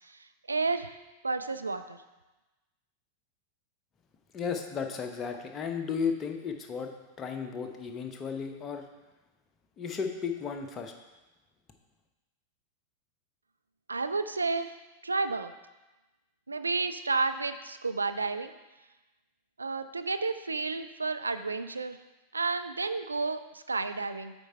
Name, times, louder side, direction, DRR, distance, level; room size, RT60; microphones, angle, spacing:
voice 1, 0.5-1.0 1.2-2.0 13.9-14.8 15.0-15.5 16.5-18.5 19.6-22.0 22.3-24.3, right 3 dB, 80° right, 9 dB, 0.4 m, -31 dB
voice 2, 4.3-6.9 7.2-8.9 9.8-10.9, left 6 dB, 25° left, 4 dB, 0.9 m, -34 dB
8.3 x 4.5 x 4.3 m, 1.1 s
figure-of-eight pair, 90°, 0 cm